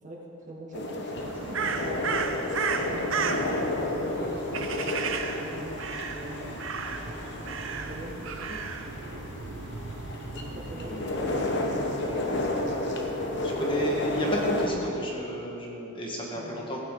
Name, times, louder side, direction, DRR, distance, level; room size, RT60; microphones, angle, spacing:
voice 1, 0.0-2.3 2.8-4.9 5.3-6.6 6.9-8.6 10.3-11.4 11.6-12.1 13.7-13.9 16.3-16.7, right 1 dB, 35° right, -3 dB, 1.9 m, -43 dB
sound 1, 0.7-14.7, left 2 dB, 55° left, 1.2 m, -32 dB
Crow, 1.2-14.9, right 5 dB, 60° right, 0.8 m, -35 dB
voice 2, 13.5-16.8, right 1 dB, 25° left, -2 dB, 1.5 m, -32 dB
16.5 x 9.1 x 4.9 m, 2.9 s
head